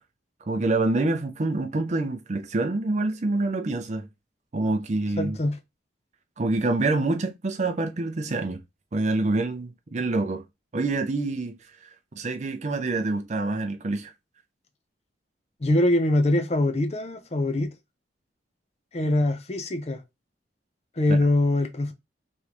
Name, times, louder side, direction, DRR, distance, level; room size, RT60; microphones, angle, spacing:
voice 1, 0.5-4.1 4.5-5.4 6.4-8.6 8.9-10.4 10.7-11.9 12.1-14.1 21.1-21.2, right 2 dB, 40° right, 0.5 m, -26 dB
voice 2, 5.2-5.6 15.6-17.7 18.9-20.0 21.0-21.9, left 1 dB, 35° left, 0.6 m, -23 dB
3.6 x 3.2 x 2.9 m
head